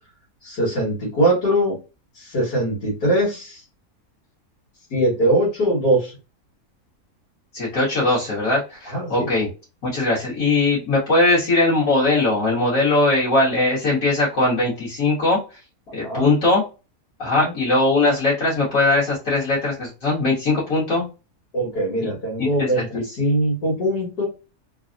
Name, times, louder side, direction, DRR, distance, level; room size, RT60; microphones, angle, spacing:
voice 1, 0.4-1.8 2.2-3.6 4.9-6.1 8.9-9.3 16.0-16.3 17.4-17.5 21.5-24.3, right 1 dB, 90° left, -8 dB, 2.1 m, -21 dB
voice 2, 7.5-9.5 9.8-15.4 15.9-16.6 17.2-21.0 22.4-22.8, left 2 dB, 65° left, -7 dB, 1.8 m, -20 dB
3.8 x 2.0 x 2.5 m, 0.29 s
omnidirectional pair, 1.6 m